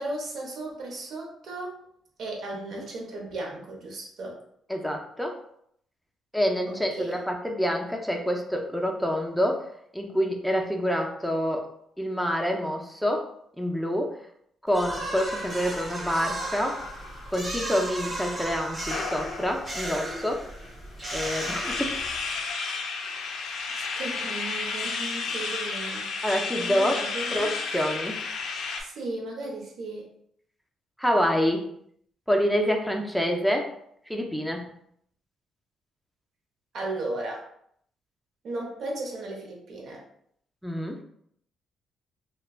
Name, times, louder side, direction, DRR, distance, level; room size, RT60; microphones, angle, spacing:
voice 1, 0.0-1.8 2.2-4.4 6.7-7.2 23.8-26.1 26.5-27.5 28.8-30.1 36.7-37.4 38.4-40.0, right 2 dB, 65° right, -1 dB, 0.9 m, -35 dB
voice 2, 4.7-5.4 6.3-9.6 9.9-11.7 12.0-13.3 13.6-14.2 14.6-16.8 17.3-20.4 21.1-21.9 26.2-27.0 27.3-28.2 31.0-31.7 32.3-33.7 34.1-34.6 40.6-41.0, equal, ahead, 1 dB, 0.5 m, -27 dB
sound 1, 14.7-22.4, right 1 dB, 30° right, 0.9 m, -35 dB
sound 2, 15.3-17.9 18.9-20.0 20.6-20.7 21.0-28.8, left 4 dB, 75° left, 0.4 m, -33 dB
3.2 x 2.2 x 2.4 m, 0.68 s
cardioid pair, 90°, 0 cm